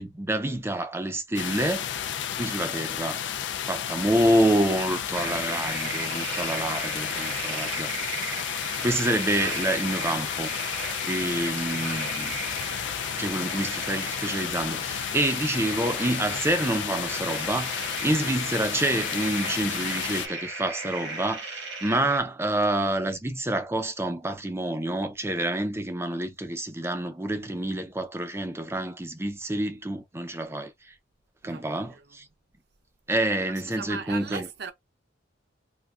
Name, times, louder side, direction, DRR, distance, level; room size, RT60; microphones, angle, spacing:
voice 1, 0.0-1.8 2.3-3.2 3.7-7.9 8.8-10.5 11.0-12.4 13.1-30.9 31.4-32.3 33.1-34.5, right 1 dB, 15° right, 0.4 m, -27 dB
sound 1, 1.4-20.3, left 9 dB, 70° left, 0.4 m, -32 dB
sound 2, 5.1-22.2, right 3 dB, 80° right, 1.2 m, -36 dB
voice 2, 31.4-32.3 33.5-34.7, right 6 dB, 60° right, 0.6 m, -40 dB
3.5 x 2.5 x 2.3 m
head